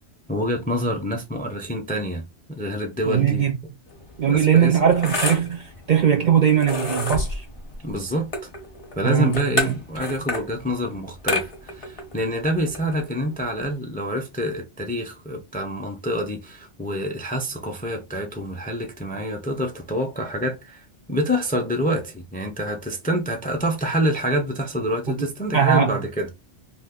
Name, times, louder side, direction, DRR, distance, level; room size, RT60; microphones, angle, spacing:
voice 1, 0.3-3.4 4.3-4.7 7.8-8.3 9.0-20.8 21.1-26.3, equal, 15° left, 0.3 m, -26 dB
voice 2, 3.1-3.6 4.2-7.4 9.0-9.4 9.7-9.8 25.1-25.2 25.5-26.0, right 8 dB, 60° right, 0.5 m, -20 dB
sound 1, 3.9-13.7, left 2 dB, 35° left, 0.7 m, -31 dB
2.7 x 2.4 x 3.5 m
omnidirectional pair, 1.2 m